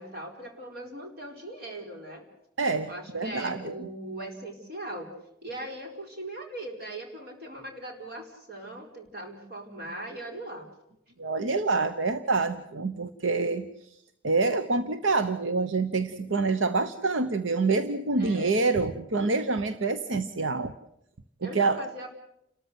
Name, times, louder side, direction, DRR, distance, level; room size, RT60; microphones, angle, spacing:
voice 1, 0.0-2.3 2.9-5.1 5.4-10.7 18.2-18.6 21.4-22.1, right 1 dB, 50° right, 1 dB, 4.5 m, -39 dB
voice 2, 2.6-3.7 11.2-13.7 14.2-20.7 21.4-21.8, right 3 dB, 80° right, 10 dB, 0.9 m, -26 dB
30.0 x 13.5 x 7.9 m, 0.81 s
head